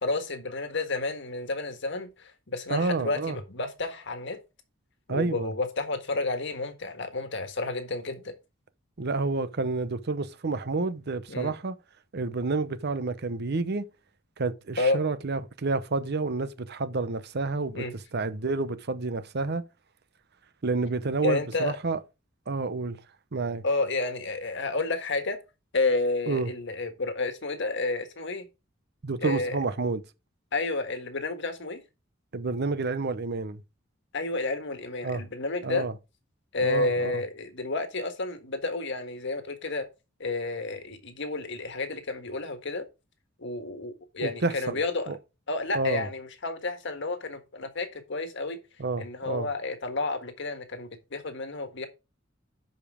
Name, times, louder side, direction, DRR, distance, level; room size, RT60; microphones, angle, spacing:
voice 1, 0.0-4.4 5.1-8.3 11.3-11.5 14.8-15.0 17.7-17.9 21.2-21.8 23.6-25.4 25.7-28.5 29.2-29.6 30.5-31.8 34.1-35.9 36.5-39.9 40.2-42.8 43.4-45.1 45.5-48.6 49.0-51.9, left 3 dB, 65° left, 1.6 m, -30 dB
voice 2, 2.7-3.4 5.1-5.5 9.0-11.7 12.1-13.9 14.4-19.6 20.6-22.0 22.5-23.0 23.3-23.6 26.3-26.5 29.0-30.0 32.3-33.6 35.0-35.2 35.6-35.9 36.6-37.2 44.2-44.8 45.1-45.2 45.7-46.1 48.8-49.5, right 3 dB, 55° right, 0.8 m, -29 dB
11.5 x 5.2 x 3.6 m
head